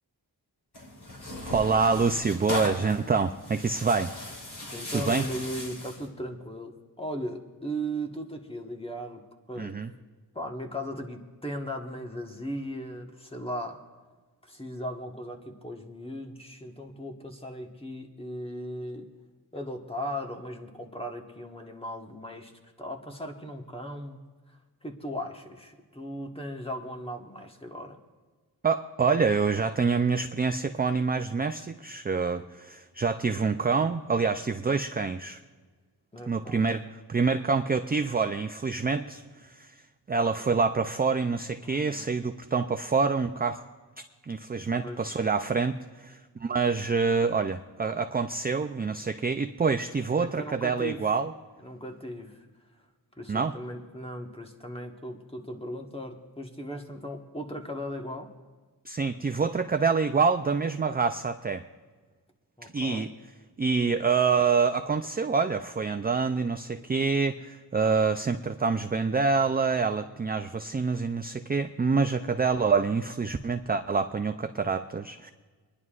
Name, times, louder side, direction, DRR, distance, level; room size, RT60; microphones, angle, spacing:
Tearing, 0.7-6.1, left 1 dB, 65° left, 3.3 m, -38 dB
voice 1, 1.4-4.1 4.9-5.2 9.6-9.9 28.6-35.4 36.3-39.7 40.1-43.6 44.2-51.3 53.3-53.5 58.9-61.6 62.7-63.1 63.6-75.3, right 5 dB, 25° right, 8 dB, 0.4 m, -26 dB
voice 2, 4.7-9.8 10.3-13.8 14.4-19.1 19.5-22.5 22.8-24.2 24.5-28.0 36.1-36.7 41.6-42.1 44.8-45.1 50.2-51.1 51.6-52.5 53.2-58.3 62.6-63.1, equal, 15° left, 3 dB, 1.4 m, -37 dB
26.5 x 11.0 x 2.5 m, 1.4 s
cardioid pair, 65°, 42 cm